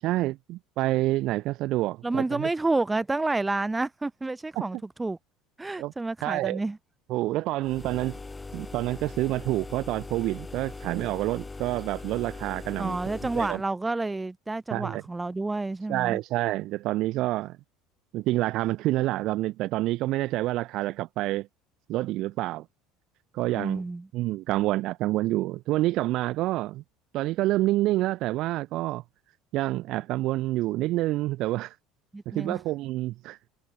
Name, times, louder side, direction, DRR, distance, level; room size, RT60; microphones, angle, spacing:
voice 1, 0.0-2.5 4.6-4.7 5.8-5.9 6.2-6.6 7.1-8.2 8.5-13.0 13.3-13.6 14.7-15.0 15.9-17.6 18.1-21.5 21.9-22.6 23.3-23.8 24.1-26.8 27.1-29.0 29.5-31.7 32.3-33.4, right 17 dB, 60° right, 1.1 m, -28 dB
voice 2, 2.0-5.2 5.6-6.8 12.8-16.2 23.5-24.1 32.1-32.6, right 2 dB, 10° right, 3.1 m, -29 dB
sound 1, 7.6-13.6, left 3 dB, 15° left, 1.9 m, -40 dB
supercardioid pair, 110°, 0 cm